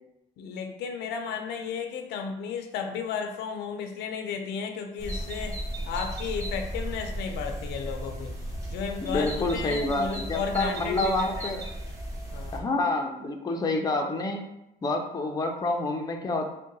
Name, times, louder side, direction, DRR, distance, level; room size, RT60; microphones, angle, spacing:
voice 1, 0.4-8.4 8.7-11.6 12.3-12.6, left 6 dB, 85° left, 5 dB, 0.5 m, -34 dB
sound 1, 5.0-12.6, right 1 dB, 20° right, 0.9 m, -35 dB
voice 2, 9.0-11.6 12.5-14.4 14.8-16.5, left 2 dB, 20° left, 2 dB, 0.5 m, -28 dB
3.7 x 2.2 x 3.9 m, 0.85 s
cardioid pair, 110°, 17 cm